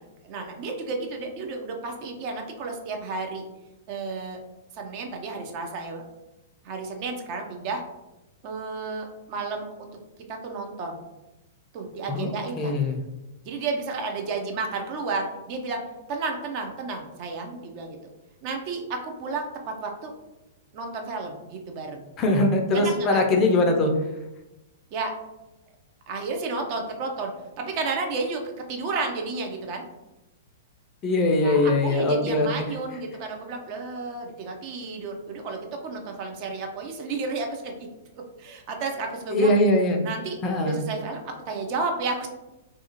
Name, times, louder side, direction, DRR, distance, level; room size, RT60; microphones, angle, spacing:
voice 1, 0.2-3.5 3.9-4.4 4.7-6.1 6.6-7.8 8.4-9.9 10.3-11.0 11.7-12.7 13.4-15.8 16.1-18.1 18.4-20.1 20.7-22.0 22.7-23.2 24.9-25.1 26.1-29.8 31.4-37.9 38.4-39.5 40.0-42.3, right 3 dB, 35° right, 3 dB, 0.4 m, -32 dB
voice 2, 12.1-13.0 22.2-23.9 31.0-32.5 39.3-40.0 40.4-40.8, left 2 dB, 25° left, 2 dB, 0.4 m, -21 dB
2.4 x 2.3 x 2.8 m, 0.98 s
figure-of-eight pair, 105°, 0 cm